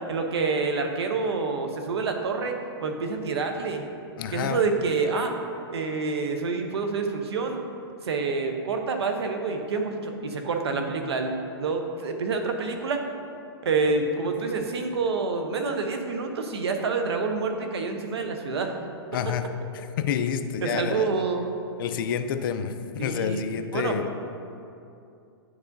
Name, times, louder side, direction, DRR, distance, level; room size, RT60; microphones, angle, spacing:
voice 1, 0.1-3.9 4.3-5.3 5.7-7.6 8.0-13.0 13.6-18.8 20.6-21.5 23.0-23.4 23.7-24.0, right 4 dB, 85° right, 5 dB, 0.8 m, -27 dB
voice 2, 4.2-4.6 19.1-21.1 21.8-24.1, left 8 dB, 55° left, 9 dB, 0.4 m, -29 dB
9.4 x 4.8 x 2.6 m, 2.6 s
hypercardioid pair, 140°, 13 cm